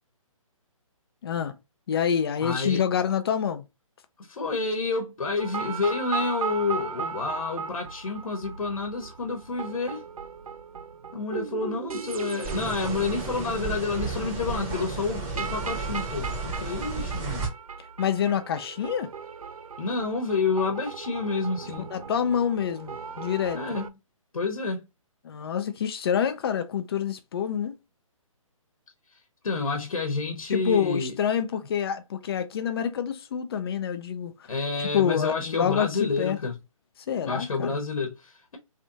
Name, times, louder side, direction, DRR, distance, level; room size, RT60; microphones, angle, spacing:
voice 1, 1.2-1.5 1.9-3.7 18.0-19.1 21.9-23.6 25.2-27.8 30.5-34.5 34.9-36.4 37.1-37.8, left 8 dB, 45° left, 0.6 m, -27 dB
voice 2, 2.4-2.8 4.2-10.1 11.1-17.5 19.8-21.9 23.5-23.8 24.3-24.9 29.4-31.1 34.5-36.6 37.3-38.6, left 4 dB, 75° left, 1.0 m, -29 dB
sound 1, 5.4-23.9, right 6 dB, 85° right, 0.4 m, -37 dB
sound 2, 12.4-17.5, right 3 dB, 20° right, 0.9 m, -33 dB
3.3 x 2.6 x 2.8 m
figure-of-eight pair, 145°, 18 cm